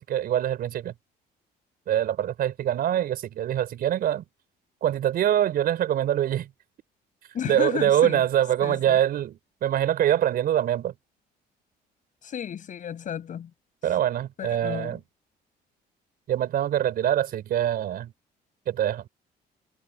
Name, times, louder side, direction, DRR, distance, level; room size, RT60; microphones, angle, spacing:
voice 1, 0.1-0.9 1.9-4.2 4.8-6.5 7.5-10.9 13.8-15.0 16.3-18.1 18.7-19.1, right 11 dB, 60° right, 5.1 m, -24 dB
voice 2, 7.3-8.2 8.6-9.0 12.2-13.5 14.4-15.0, left 9 dB, 50° left, 6.6 m, -33 dB
cardioid pair, 110°, 17 cm